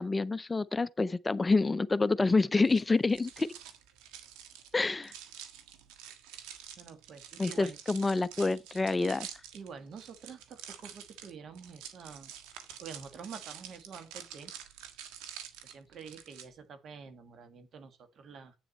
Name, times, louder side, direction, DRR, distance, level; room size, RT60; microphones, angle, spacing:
voice 1, 0.0-3.5 4.7-5.1 7.4-9.3, left 3 dB, 25° left, 0.5 m, -27 dB
sound 1, 2.6-16.4, right 9 dB, 90° right, 1.5 m, -48 dB
voice 2, 6.8-7.8 9.5-12.3 12.8-14.5 15.0-15.1 15.6-18.5, right 6 dB, 60° right, 1.9 m, -47 dB
9.1 x 7.3 x 4.2 m
supercardioid pair, 75°, 0 cm